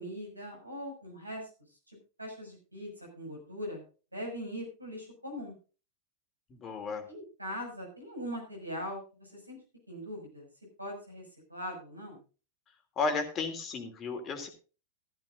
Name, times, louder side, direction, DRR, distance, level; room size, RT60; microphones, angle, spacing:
voice 1, 0.0-1.5 1.9-3.8 4.1-5.5 7.1-9.6 9.9-10.5 10.8-12.2, equal, 85° right, 2 dB, 6.2 m, -41 dB
voice 2, 6.5-7.1 13.0-14.5, left 4 dB, 30° left, 6 dB, 3.0 m, -33 dB
15.0 x 14.5 x 2.6 m, 0.34 s
figure-of-eight pair, 90°, 0 cm